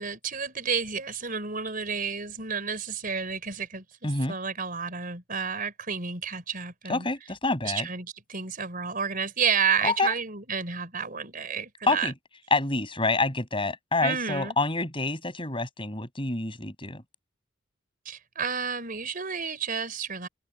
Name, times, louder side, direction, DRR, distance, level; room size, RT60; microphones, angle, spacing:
voice 1, 0.0-7.1 7.6-12.1 14.0-14.5 18.0-20.3, right 6 dB, 45° right, 4.8 m, -31 dB
voice 2, 4.0-4.3 6.9-7.9 9.8-10.2 11.9-12.1 12.5-17.0, left 3 dB, 25° left, 7.3 m, -27 dB
open air
head